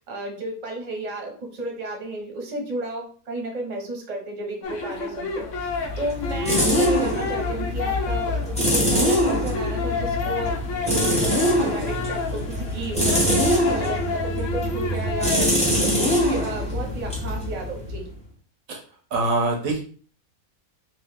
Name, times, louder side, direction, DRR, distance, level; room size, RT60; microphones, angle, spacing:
voice 1, 0.1-5.7 6.0-8.3 8.6-10.5 10.8-18.1, right 2 dB, 35° right, 0 dB, 0.8 m, -33 dB
sound 1, 4.6-15.5, left 4 dB, 65° left, 0.9 m, -30 dB
sound 2, 5.5-18.2, equal, 5° left, 0.8 m, -24 dB
voice 2, 19.1-19.8, right 2 dB, 70° right, 3 dB, 1.0 m, -23 dB
3.0 x 2.5 x 3.4 m, 0.42 s
omnidirectional pair, 1.5 m